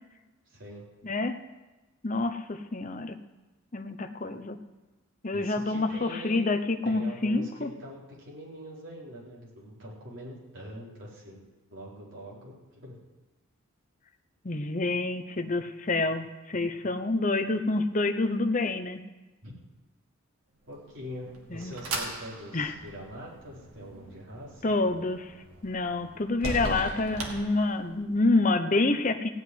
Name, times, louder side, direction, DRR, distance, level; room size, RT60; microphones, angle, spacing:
voice 1, 0.5-0.8 5.3-6.4 6.8-11.4 11.7-12.9 19.4-19.5 20.7-24.7, equal, 55° right, -6 dB, 4.1 m, -43 dB
voice 2, 1.0-1.4 2.0-3.2 3.7-4.6 5.2-7.7 14.4-19.0 21.5-21.7 22.5-22.7 24.6-25.3 25.6-29.3, left 2 dB, 35° left, 7 dB, 0.7 m, -27 dB
sound 1, 20.8-28.2, right 2 dB, 90° right, 2.1 m, -39 dB
16.5 x 5.7 x 9.5 m, 1.1 s
head